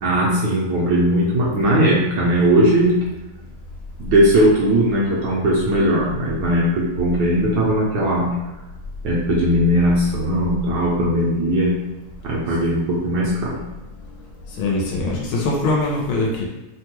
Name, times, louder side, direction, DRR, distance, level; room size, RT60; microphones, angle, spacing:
voice 1, 0.0-2.9 4.0-8.3 9.0-11.8 12.2-13.6, right 1 dB, 70° right, -5 dB, 1.1 m, -18 dB
voice 2, 14.5-16.4, left 2 dB, 90° left, -2 dB, 1.5 m, -22 dB
3.4 x 2.2 x 2.9 m, 1.0 s
omnidirectional pair, 2.2 m